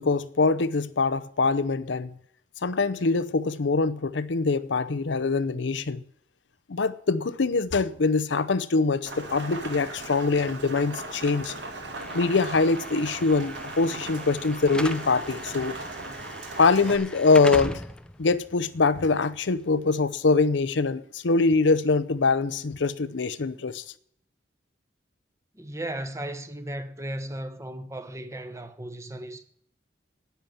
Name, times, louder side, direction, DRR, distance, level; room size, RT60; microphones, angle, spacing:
voice 1, 0.0-2.1 2.6-6.0 6.7-11.5 12.1-15.7 16.6-17.8 18.2-23.8, left 4 dB, 85° left, 0.7 m, -23 dB
Rain, 9.1-17.0, right 2 dB, 75° right, 2.2 m, -38 dB
Slam / Alarm, 12.0-20.0, left 1 dB, 5° left, 0.5 m, -39 dB
voice 2, 25.5-29.4, right 1 dB, 15° right, 0.9 m, -36 dB
10.5 x 9.3 x 7.1 m
head